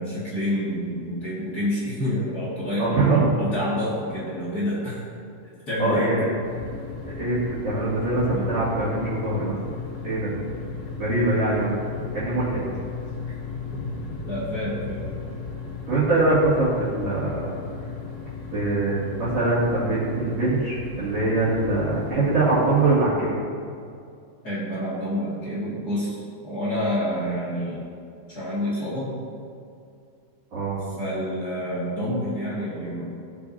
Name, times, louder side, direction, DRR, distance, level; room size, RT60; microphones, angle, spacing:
voice 1, 0.0-3.0 3.4-5.0 5.7-6.1 8.3-8.5 13.7-15.1 24.4-27.8 28.3-29.1 31.0-33.1, equal, 35° left, -9 dB, 1.5 m, -28 dB
voice 2, 2.8-3.3 5.8-6.3 7.1-9.6 10.0-10.3 11.0-11.8 12.1-12.7 15.9-17.5 18.5-23.4 30.5-30.9, right 2 dB, 40° right, -10 dB, 3.0 m, -23 dB
sound 1, 6.4-23.0, left 5 dB, 70° left, 3.4 m, -36 dB
19.0 x 6.8 x 2.8 m, 2.4 s
omnidirectional pair, 5.4 m